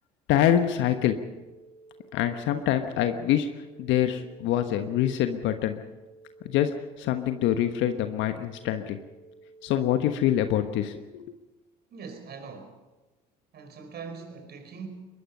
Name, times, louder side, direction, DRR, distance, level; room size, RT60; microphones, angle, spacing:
voice 1, 0.3-1.2 2.1-3.5 3.8-5.8 6.4-6.7 7.0-9.0 9.6-11.3, left 11 dB, 65° left, 8 dB, 1.3 m, -25 dB
sound 1, 0.7-10.7, right 3 dB, 35° left, 6.2 m, -53 dB
voice 2, 11.9-12.8 13.5-14.9, right 5 dB, 50° right, 6 dB, 4.9 m, -41 dB
22.5 x 21.5 x 5.5 m, 1.1 s
hypercardioid pair, 65°, 21 cm